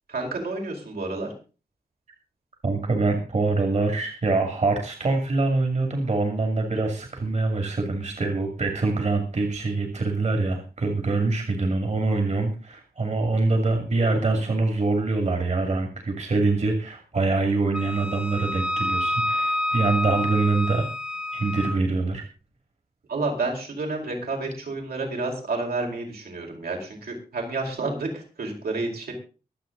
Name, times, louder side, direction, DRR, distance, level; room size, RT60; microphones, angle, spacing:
voice 1, 0.1-1.3 23.1-29.1, right 3 dB, 80° right, 0 dB, 4.8 m, -30 dB
voice 2, 2.6-20.9 21.3-22.2, right 3 dB, 45° right, 5 dB, 2.5 m, -24 dB
Wind instrument woodwind instrument, 17.7-21.8, left 1 dB, 5° right, 0.9 m, -28 dB
23.5 x 7.9 x 3.9 m, 0.35 s
wide cardioid pair, 160°, 16 cm